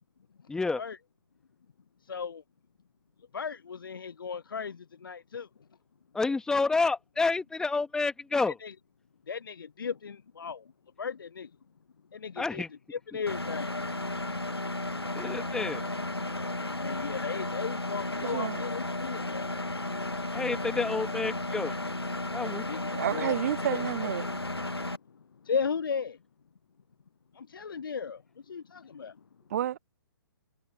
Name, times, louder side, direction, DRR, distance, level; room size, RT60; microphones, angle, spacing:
voice 1, 0.5-0.8 6.1-8.5 12.4-12.7 15.1-15.9 20.3-21.8 22.3-22.7, left 3 dB, 5° left, 1.9 m, -29 dB
voice 2, 2.1-2.4 3.3-5.5 8.4-8.7 9.3-10.6 11.0-11.5 12.1-12.6 12.9-13.7 16.8-19.5 22.7-23.4 23.7-24.1 25.5-26.2 27.4-28.2 28.5-29.1, left 6 dB, 60° left, 0.7 m, -36 dB
Engine, 13.3-25.0, left 2 dB, 85° left, 1.3 m, -34 dB
voice 3, 18.2-18.6 22.9-24.3 29.5-29.8, right 11 dB, 40° right, 0.8 m, -30 dB
figure-of-eight pair, 130°, 13 cm